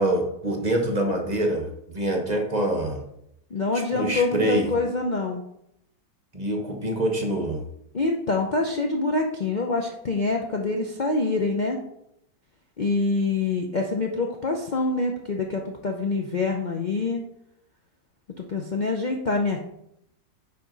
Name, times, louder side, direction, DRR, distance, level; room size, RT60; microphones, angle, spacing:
voice 1, 0.0-3.0 3.7-4.7 6.3-7.6, right 1 dB, 30° right, 2 dB, 1.0 m, -25 dB
voice 2, 3.5-5.4 7.9-11.8 12.8-17.2 18.4-19.6, left 3 dB, 70° left, 2 dB, 0.4 m, -25 dB
9.8 x 5.0 x 3.9 m, 0.78 s
omnidirectional pair, 1.8 m